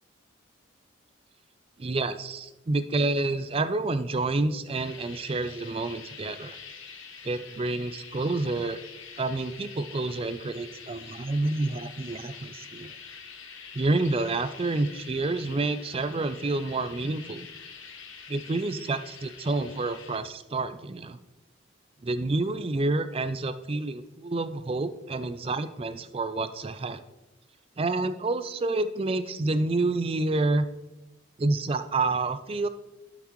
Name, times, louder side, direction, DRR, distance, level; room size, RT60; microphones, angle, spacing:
voice 1, 1.8-6.6 7.2-8.8 9.2-12.9 13.7-17.5 18.3-21.2 22.0-27.0 27.8-30.7 31.4-32.7, right 2 dB, 30° right, 12 dB, 0.4 m, -28 dB
sound 1, 4.7-20.2, left 6 dB, 80° left, 1.1 m, -46 dB
12.0 x 5.9 x 3.1 m, 1.0 s
head